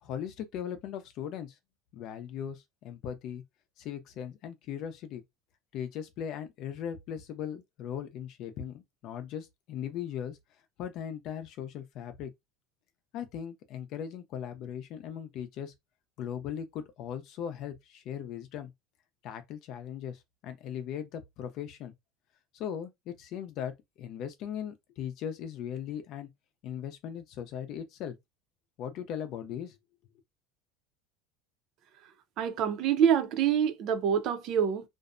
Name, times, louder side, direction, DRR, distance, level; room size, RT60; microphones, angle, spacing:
voice 1, 0.0-1.5 1.9-3.4 3.8-5.2 5.7-10.4 10.8-12.3 13.1-15.7 16.2-18.7 19.2-21.9 22.5-23.7 24.0-26.3 26.6-28.2 28.8-29.8, left 9 dB, 50° left, 0.5 m, -38 dB
voice 2, 32.4-34.8, right 8 dB, 50° right, 0.5 m, -26 dB
2.5 x 2.1 x 2.5 m
supercardioid pair, 135°, 0 cm